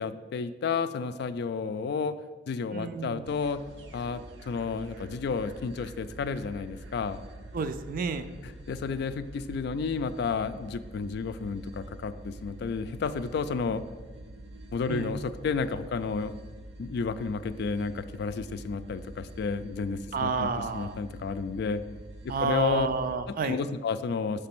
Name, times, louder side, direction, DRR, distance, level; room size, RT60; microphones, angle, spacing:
voice 1, 0.0-2.2 2.5-3.6 3.9-7.2 8.7-13.8 14.7-16.3 16.8-20.5 20.7-21.8 22.2-22.9 23.4-24.5, left 5 dB, 65° left, 12 dB, 0.3 m, -31 dB
voice 2, 2.7-3.3 7.5-8.3 14.9-15.2 20.1-21.0 22.3-23.6, right 5 dB, 50° right, 10 dB, 0.4 m, -30 dB
sound 1, 3.2-23.1, right 1 dB, 80° right, 0.7 m, -46 dB
6.1 x 3.3 x 5.9 m, 1.3 s
head